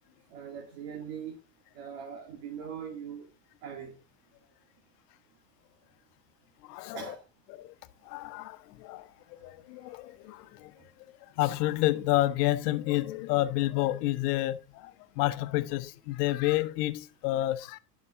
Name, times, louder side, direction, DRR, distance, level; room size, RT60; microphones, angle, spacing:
voice 1, 0.3-1.3 1.7-3.3 3.6-3.9 6.9-7.2, right 7 dB, 70° right, 2.5 m, -40 dB
voice 2, 6.6-7.1 7.5-7.7 8.0-10.7 11.4-17.8, left 16 dB, 70° left, 1.0 m, -30 dB
11.0 x 6.2 x 3.7 m
hypercardioid pair, 85°, 49 cm